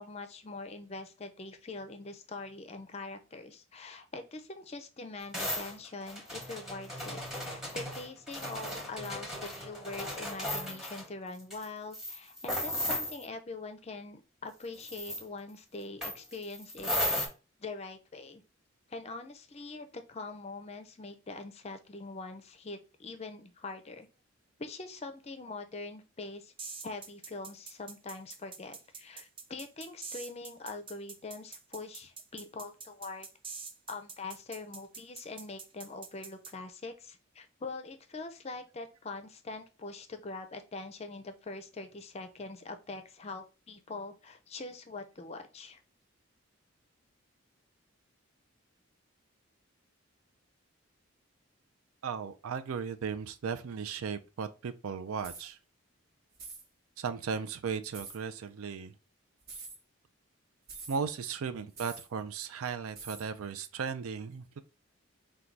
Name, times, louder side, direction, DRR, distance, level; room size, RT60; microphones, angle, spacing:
voice 1, 0.0-16.9 17.6-18.4 18.9-24.1 24.6-26.5 26.8-33.3 33.9-45.8, left 3 dB, 30° left, 0.4 m, -43 dB
sound 1, 5.3-11.1 11.5-11.7 11.9-13.2 14.7-15.2 16.0-17.3, left 1 dB, ahead, 0.9 m, -36 dB
sound 2, 26.6-36.5, right 5 dB, 25° right, 0.5 m, -45 dB
voice 2, 52.0-55.6 57.0-58.9 60.9-64.6, right 6 dB, 80° right, 0.4 m, -36 dB
sound 3, 55.2-55.5 56.3-56.7 57.9-58.2 59.4-59.8 60.7-61.0 61.8-62.1 63.0-63.3, right 4 dB, 45° right, 0.9 m, -45 dB
4.5 x 2.3 x 3.8 m
head